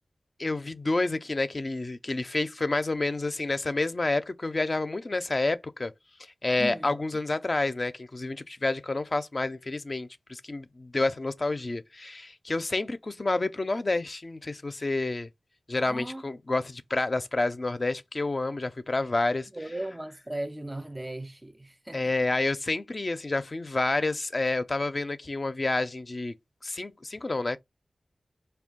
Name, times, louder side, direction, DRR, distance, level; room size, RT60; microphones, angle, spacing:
voice 1, 0.4-5.9 6.2-15.3 15.7-19.7 21.9-26.3 26.6-27.6, left 2 dB, 45° left, 0.4 m, -29 dB
voice 2, 6.6-7.0 15.8-16.2 19.5-22.0, right 1 dB, 20° right, 0.4 m, -37 dB
4.4 x 2.3 x 3.5 m
wide cardioid pair, 60°, 0 cm